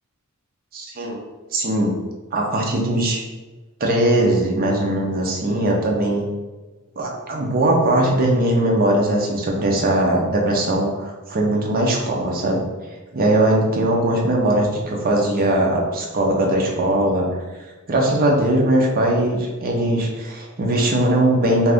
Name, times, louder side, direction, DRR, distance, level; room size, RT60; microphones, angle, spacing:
voice 1, 0.7-1.2 1.5-1.9 2.3-3.2 3.8-6.3 7.0-12.6 13.1-17.3 17.9-21.7, right 1 dB, 40° right, 0 dB, 0.5 m, -20 dB
2.4 x 2.4 x 3.4 m, 1.2 s
head